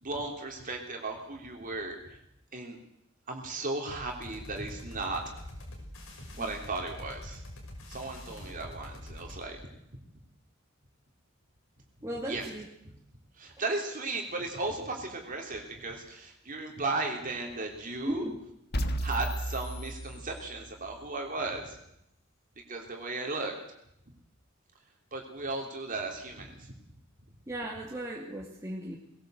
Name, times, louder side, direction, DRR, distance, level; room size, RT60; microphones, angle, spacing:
voice 1, 0.0-2.0 2.5-2.8 3.3-5.2 6.4-7.4 7.9-9.6 12.3-12.5 12.8-12.9 13.4-18.3 19.0-21.8 22.7-23.5 25.1-26.7, right 3 dB, 40° right, 1 dB, 3.3 m, -35 dB
sound 1, 3.9-9.5, left 1 dB, 80° left, 5.7 m, -45 dB
voice 2, 12.0-12.7 18.1-18.4 27.5-29.0, right 1 dB, 15° right, -3 dB, 2.4 m, -36 dB
sound 2, 18.7-20.8, right 1 dB, 50° left, 1.5 m, -33 dB
21.0 x 18.0 x 7.9 m, 0.78 s
head